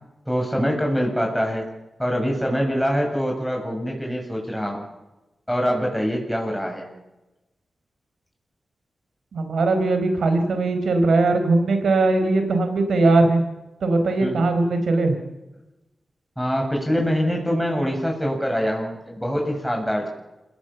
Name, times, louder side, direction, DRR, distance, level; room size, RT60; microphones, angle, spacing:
voice 1, 0.3-1.7 2.0-4.8 5.5-6.9 14.2-14.4 16.4-20.1, equal, ahead, 1 dB, 7.2 m, -24 dB
voice 2, 9.3-13.4 13.8-15.2, right 2 dB, 85° right, 7 dB, 4.6 m, -20 dB
28.0 x 18.0 x 7.2 m, 1.0 s
cardioid pair, 65°, 0 cm